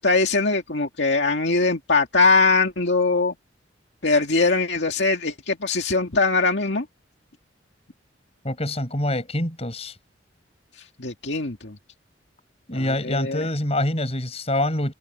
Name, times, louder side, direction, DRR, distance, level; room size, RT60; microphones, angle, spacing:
voice 1, 0.0-3.3 4.0-6.8 11.0-11.8 12.7-13.5, left 3 dB, 65° left, 2.2 m, -21 dB
voice 2, 8.4-9.9 12.7-14.9, left 1 dB, 35° left, 6.4 m, -25 dB
head